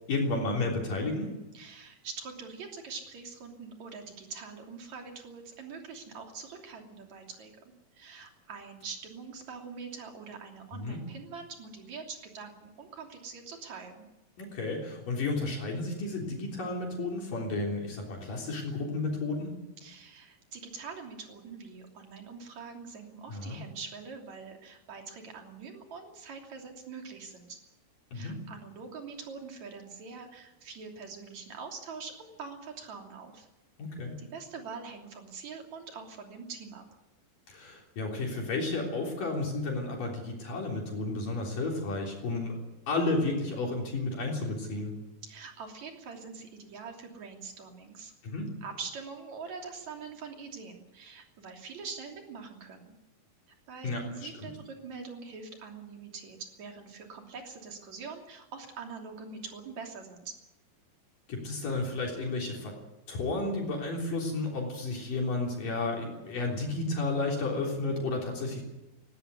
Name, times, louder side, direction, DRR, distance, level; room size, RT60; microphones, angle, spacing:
voice 1, 0.1-1.3 10.7-11.0 14.4-19.6 23.3-23.6 28.1-28.4 33.8-34.2 37.5-42.6 42.9-44.9 48.2-48.5 53.8-54.5 61.3-62.7 63.1-68.6, left 2 dB, 55° left, -1 dB, 5.0 m, -32 dB
voice 2, 1.5-7.5 7.9-14.0 19.8-27.6 28.1-33.5 34.2-36.9 45.2-48.1 48.6-52.9 53.7-60.4, right 5 dB, 45° right, 2 dB, 4.0 m, -44 dB
19.0 x 17.0 x 9.6 m, 1.0 s
omnidirectional pair, 4.6 m